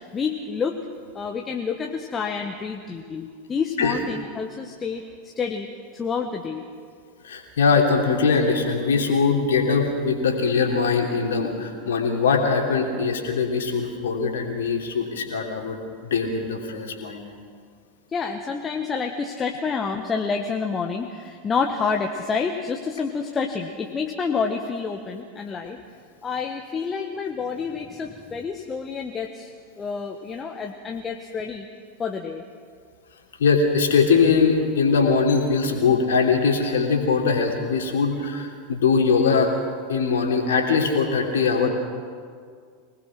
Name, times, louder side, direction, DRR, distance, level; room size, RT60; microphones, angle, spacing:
voice 1, 0.1-0.8 1.1-6.6 18.1-25.8 26.2-29.5 29.8-31.7 32.0-32.4, left 5 dB, 25° left, 2 dB, 1.4 m, -28 dB
voice 2, 7.2-17.2 33.4-39.5 39.9-41.7, left 5 dB, 70° left, 1 dB, 3.2 m, -21 dB
24.5 x 19.5 x 6.1 m, 2.1 s
figure-of-eight pair, 85°, 0 cm